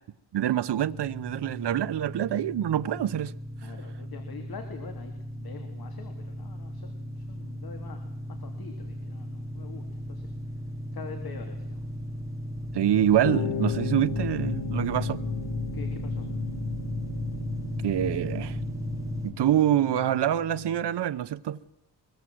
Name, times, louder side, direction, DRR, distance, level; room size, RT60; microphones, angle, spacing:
voice 1, 0.3-3.3 12.7-15.2 17.8-18.6 19.2-21.6, right 11 dB, 90° right, 0.9 m, -26 dB
sound 1, 0.7-19.3, equal, 10° right, 6.5 m, -36 dB
voice 2, 3.6-8.1 8.4-10.3 10.9-11.8 15.7-16.3, left 5 dB, 65° left, 3.4 m, -45 dB
sound 2, 13.2-20.9, left 10 dB, 90° left, 0.9 m, -36 dB
23.5 x 23.0 x 7.8 m
wide cardioid pair, 150°, 40 cm